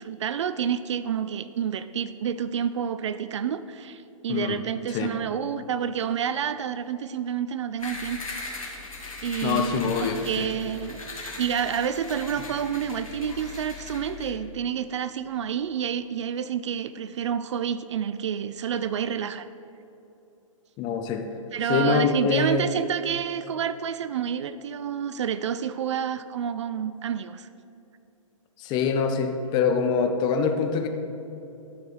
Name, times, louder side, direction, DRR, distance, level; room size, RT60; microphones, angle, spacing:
voice 1, 0.0-8.2 9.2-11.0 11.4-19.5 21.5-27.5, right 8 dB, 60° right, 13 dB, 0.4 m, -29 dB
voice 2, 4.3-4.6 4.9-5.2 9.4-10.5 20.8-21.3 21.7-22.7 28.6-30.9, left 5 dB, 25° left, 6 dB, 0.7 m, -24 dB
sound 1, 7.8-14.3, left 3 dB, 85° left, 2.0 m, -39 dB
12.0 x 4.9 x 4.8 m, 2.9 s
hypercardioid pair, 125°, 17 cm